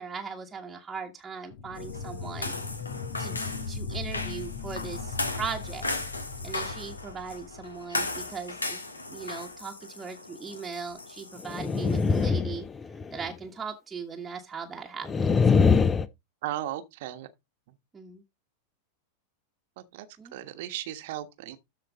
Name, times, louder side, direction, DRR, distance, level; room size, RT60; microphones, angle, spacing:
voice 1, 0.0-2.5 3.2-5.9 6.4-8.8 9.1-15.9 17.9-18.2 20.2-20.3, right 5 dB, 15° right, 1.3 m, -39 dB
sound 1, 1.5-8.0, left 5 dB, 55° left, 1.2 m, -38 dB
sound 2, 1.7-12.3, left 2 dB, 75° left, 1.5 m, -37 dB
sound 3, 11.4-13.3 15.1-16.1, left 5 dB, 20° left, 0.6 m, -22 dB
voice 2, 16.4-17.3 19.9-20.1 20.3-21.6, right 13 dB, 50° right, 1.2 m, -35 dB
13.0 x 4.5 x 3.9 m
figure-of-eight pair, 90°, 0 cm